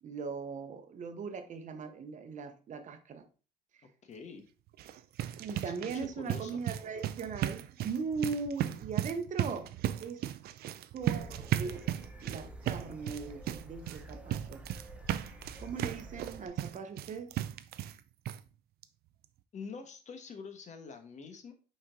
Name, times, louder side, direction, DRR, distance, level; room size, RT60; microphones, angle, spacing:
voice 1, 0.0-3.3 5.4-9.7 10.0-10.2 10.9-11.9 12.2-14.6 15.6-17.3, right 5 dB, 45° right, 1.0 m, -39 dB
voice 2, 4.0-4.5 5.6-5.9 6.2-6.6 19.5-21.5, left 5 dB, 45° left, 1.3 m, -45 dB
sound 1, 4.7-18.0 18.3-18.4 18.8-18.9 19.2-19.3, right 12 dB, 65° right, 0.5 m, -36 dB
sound 2, 11.0-16.5, right 1 dB, 5° right, 0.8 m, -49 dB
5.9 x 4.4 x 3.8 m
cardioid pair, 110°, 17 cm